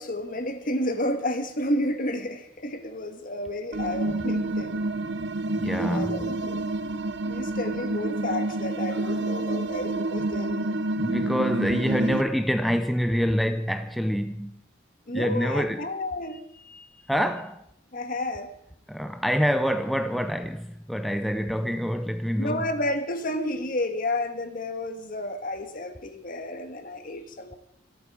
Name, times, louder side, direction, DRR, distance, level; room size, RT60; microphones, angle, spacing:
voice 1, 0.0-4.8 5.8-10.8 15.1-16.9 17.9-18.5 22.4-27.5, left 1 dB, 45° left, 1.5 m, -31 dB
sound 1, 3.7-12.2, right 2 dB, 65° right, 0.7 m, -28 dB
voice 2, 5.5-6.3 8.9-9.0 11.0-14.6 15.1-15.9 17.1-17.6 18.9-22.7, equal, ahead, 0.5 m, -26 dB
25.5 x 8.9 x 4.8 m
head